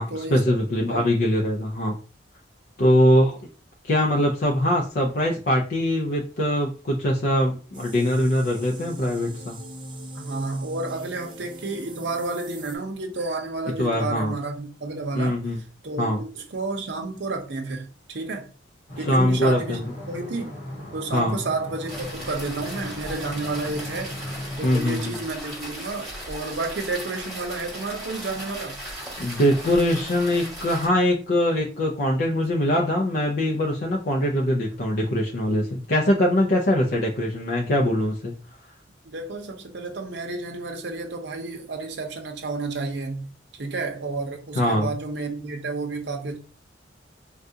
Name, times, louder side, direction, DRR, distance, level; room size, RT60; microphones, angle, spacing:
voice 1, 0.0-1.9 2.8-3.4 3.8-9.6 13.8-14.3 15.1-15.6 16.0-16.2 19.1-19.9 21.1-21.4 24.6-25.2 29.2-38.3 44.6-44.9, left 1 dB, 55° left, 0.5 m, -22 dB
sound 1, 7.7-12.8, equal, 25° right, 0.5 m, -40 dB
voice 2, 10.1-15.4 15.8-18.5 19.0-19.8 20.1-20.6 20.9-24.1 24.6-29.2 39.0-43.3 43.5-46.4, right 3 dB, 65° right, 0.7 m, -31 dB
sound 2, 18.9-24.7, left 1 dB, 85° left, 1.6 m, -37 dB
sound 3, 21.9-30.9, equal, ahead, 1.2 m, -37 dB
3.6 x 2.3 x 2.6 m
head